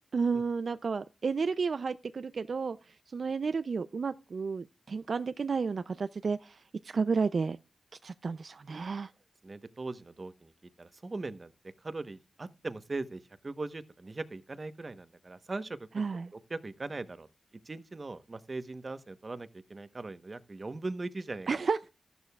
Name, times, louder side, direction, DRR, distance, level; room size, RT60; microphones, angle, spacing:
voice 1, 0.1-7.6 8.0-9.1 15.9-16.3 21.5-21.9, right 5 dB, 65° right, 0.4 m, -32 dB
voice 2, 9.4-11.5 11.8-15.9 16.3-17.3 17.6-21.5, right 3 dB, 40° right, 1.0 m, -40 dB
13.5 x 11.0 x 2.4 m
wide cardioid pair, 80°, 0 cm